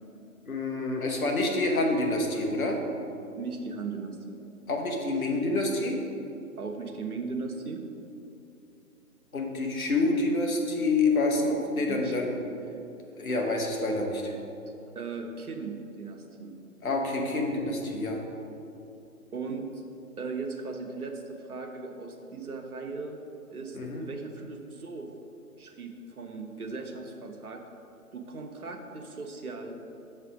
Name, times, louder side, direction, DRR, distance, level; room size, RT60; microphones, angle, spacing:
voice 1, 0.5-2.8 4.7-6.0 9.3-12.4 13.1-14.3 16.8-18.2 23.7-24.0, left 2 dB, 65° left, 1 dB, 1.1 m, -27 dB
voice 2, 3.4-4.4 6.6-7.8 11.9-12.2 14.9-16.6 19.3-19.8 20.2-23.2 23.5-25.1 25.6-27.6 28.1-29.8, right 4 dB, 75° right, 3 dB, 0.8 m, -38 dB
6.7 x 3.3 x 4.9 m, 2.7 s
figure-of-eight pair, 140°, 45 cm